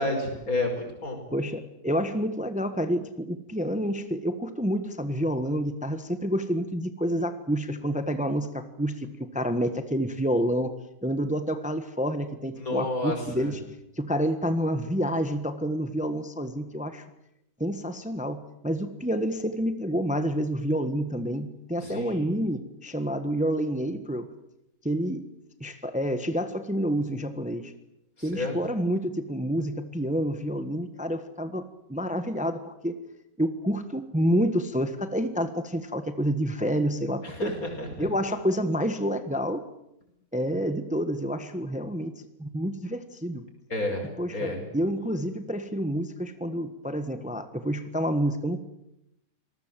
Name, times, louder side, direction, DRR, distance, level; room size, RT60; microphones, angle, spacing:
voice 1, 0.0-1.2 12.6-13.5 21.8-22.3 28.2-28.6 37.2-38.1 43.7-44.6, left 2 dB, 65° left, 4 dB, 5.9 m, -30 dB
voice 2, 1.3-9.1 9.3-10.7 11.0-13.6 14.0-17.0 17.6-24.3 24.8-25.2 25.6-27.7 28.2-32.9 33.4-37.6 38.0-39.6 40.3-42.1 42.4-43.4 44.2-48.6, equal, 5° right, 9 dB, 1.3 m, -28 dB
26.5 x 19.5 x 7.6 m, 0.82 s
omnidirectional pair, 1.6 m